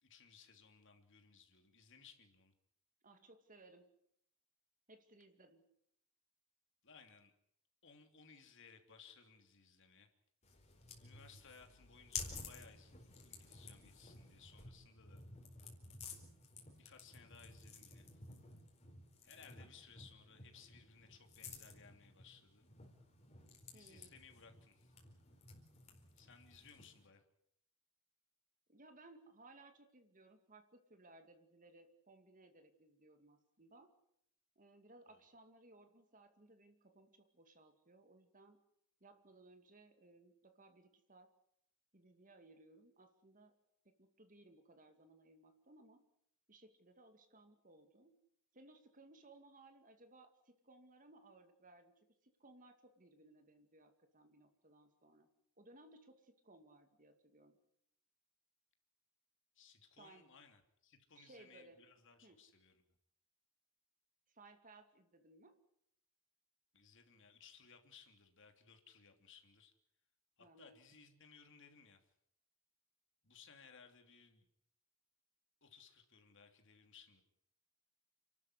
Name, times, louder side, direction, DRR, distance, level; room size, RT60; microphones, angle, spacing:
voice 1, 0.0-2.5 6.8-7.3 7.8-10.1 11.0-15.2 16.8-18.2 19.2-22.7 23.7-25.0 26.2-27.2 35.1-35.2 59.5-62.9 66.7-69.7 70.4-72.1 73.2-74.5 75.6-77.2, left 6 dB, 55° left, 5 dB, 3.0 m, -62 dB
voice 2, 3.0-3.9 4.9-5.6 23.7-24.1 28.7-33.9 34.6-38.6 39.0-41.3 41.9-43.5 43.8-46.0 46.5-48.1 48.5-55.3 55.6-57.6 60.0-60.3 61.1-61.8 62.2-62.4 64.3-65.6 70.4-70.8, right 2 dB, 35° right, 7 dB, 2.4 m, -63 dB
sound 1, 10.4-27.1, left 4 dB, 30° left, 4.5 m, -53 dB
29.5 x 12.5 x 9.8 m, 0.72 s
head